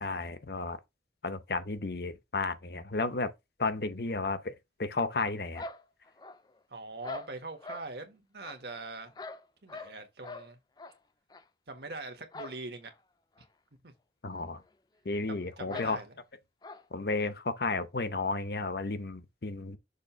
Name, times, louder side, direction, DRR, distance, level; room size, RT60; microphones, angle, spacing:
voice 1, 0.0-0.8 1.2-3.3 3.6-4.5 4.8-5.6 14.2-14.6 15.0-16.0 16.9-19.8, left 3 dB, 60° left, 0.8 m, -33 dB
sound 1, 5.5-6.6 7.0-7.9 8.4-10.0 10.2-10.5 10.8-11.0 11.3-11.4 12.3-12.6 12.9-13.0 13.4-13.5 14.3-14.4 14.7-14.8 15.7-16.0 16.6-16.8, left 3 dB, 25° left, 0.5 m, -43 dB
voice 2, 6.7-9.1 9.6-10.6 11.7-12.9 13.8-13.9 15.3-16.2, right 3 dB, 65° right, 1.5 m, -42 dB
6.6 x 2.8 x 5.6 m
head